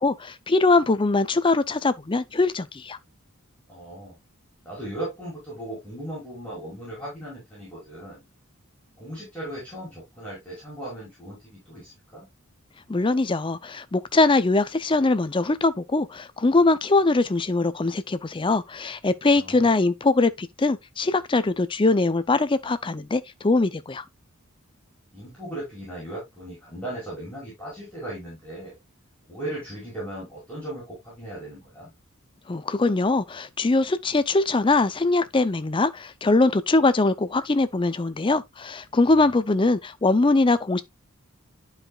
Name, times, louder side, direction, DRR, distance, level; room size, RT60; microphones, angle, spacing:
voice 1, 0.0-3.0 12.9-24.0 32.5-40.8, left 3 dB, 25° left, 0.5 m, -22 dB
voice 2, 3.7-4.2 4.6-8.2 9.0-12.3 19.3-19.7 25.1-28.8 29.3-31.9, right 1 dB, 5° left, 5.1 m, -37 dB
11.5 x 4.9 x 2.4 m
head